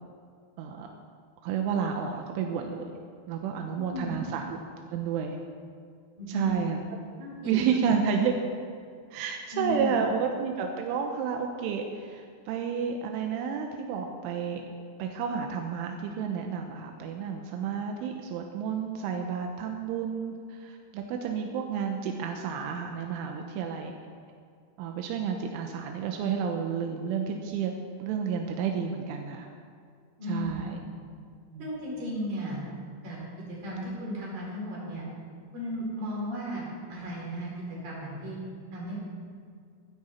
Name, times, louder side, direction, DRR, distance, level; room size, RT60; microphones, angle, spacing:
voice 1, 0.6-0.9 1.4-2.9 3.3-4.4 4.9-5.4 6.3-6.8 7.5-8.3 9.1-14.6 15.0-24.0 24.8-27.7 28.0-29.5 30.3-30.8 31.5-31.7, right 6 dB, 90° right, 3 dB, 3.4 m, -31 dB
voice 2, 3.8-4.2 6.2-6.5 7.2-7.6 9.5-10.0 30.2-30.6 31.6-32.6 33.0-33.2 33.5-35.0 35.5-36.6 36.9-37.5 37.8-38.4 38.7-39.1, equal, 50° right, -6 dB, 6.3 m, -35 dB
16.0 x 15.0 x 4.3 m, 2.2 s
omnidirectional pair, 5.5 m